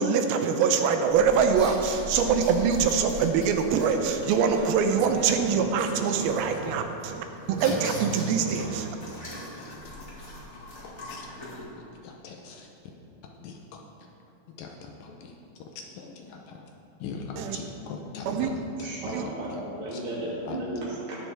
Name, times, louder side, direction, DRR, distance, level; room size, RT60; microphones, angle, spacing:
voice 1, 0.0-9.0 17.4-17.6 18.3-18.5 19.0-19.2, right 6 dB, 85° right, 6 dB, 2.5 m, -24 dB
sound 1, 1.1-11.6, left 1 dB, 35° left, 1.0 m, -41 dB
voice 2, 9.6-10.0 10.8-11.3 12.0-12.7 13.3-13.8 14.6-16.7 17.0-18.9 19.2-19.6 19.9-20.0 20.5-20.6, left 4 dB, 75° left, 1 dB, 2.2 m, -41 dB
voice 3, 18.8-21.2, right 1 dB, 65° right, -7 dB, 4.1 m, -34 dB
18.5 x 6.5 x 3.4 m, 2.8 s
omnidirectional pair, 4.4 m